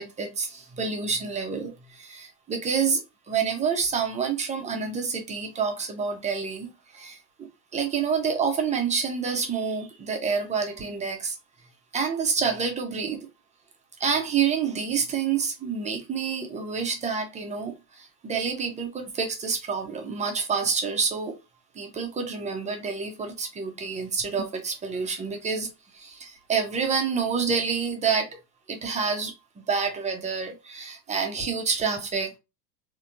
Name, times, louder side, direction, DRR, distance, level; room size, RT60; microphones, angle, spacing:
voice 1, 0.0-3.0 3.3-7.2 7.7-11.4 11.9-13.3 14.0-21.3 21.7-25.7 25.9-28.4 28.7-32.4, right 5 dB, 15° right, 0.8 m, -28 dB
4.1 x 2.9 x 2.6 m
hypercardioid pair, 100°, 50 cm